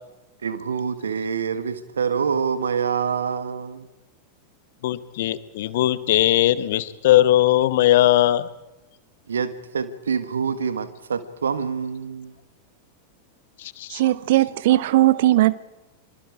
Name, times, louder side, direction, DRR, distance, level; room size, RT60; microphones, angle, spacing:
voice 1, 0.4-3.9 9.3-12.3, right 6 dB, 70° right, 1.5 m, -26 dB
voice 2, 4.8-8.5 13.6-14.0, left 14 dB, 55° left, 1.1 m, -19 dB
voice 3, 13.9-15.5, right 15 dB, 55° right, 0.8 m, -18 dB
26.0 x 24.0 x 4.9 m
figure-of-eight pair, 90°, 0 cm